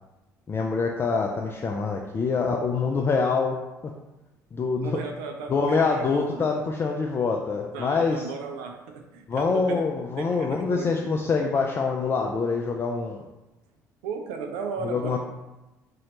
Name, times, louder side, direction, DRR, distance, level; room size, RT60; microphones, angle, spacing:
voice 1, 0.5-3.6 4.5-5.0 5.5-8.3 9.3-13.2 14.8-15.2, left 4 dB, 25° left, 1 dB, 0.4 m, -25 dB
voice 2, 4.7-6.5 7.7-9.9 10.2-10.9 14.0-15.2, right 5 dB, 60° right, 4 dB, 0.5 m, -35 dB
3.1 x 2.8 x 3.8 m, 1.0 s
figure-of-eight pair, 55°, 9 cm